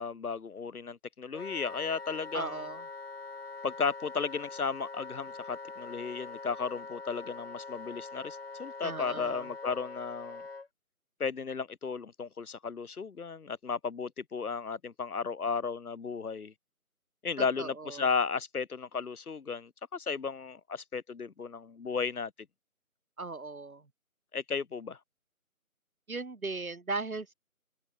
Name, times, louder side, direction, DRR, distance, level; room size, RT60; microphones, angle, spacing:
voice 1, 0.0-2.6 3.6-10.4 11.2-16.5 17.2-22.3 24.3-25.0, left 5 dB, 85° left, 1.0 m, -34 dB
Wind instrument woodwind instrument, 1.3-10.7, left 3 dB, 45° left, 0.7 m, -44 dB
voice 2, 2.3-2.8 8.8-9.5 17.4-18.1 23.2-23.9 26.1-27.3, right 3 dB, 75° right, 2.3 m, -37 dB
figure-of-eight pair, 160°, 43 cm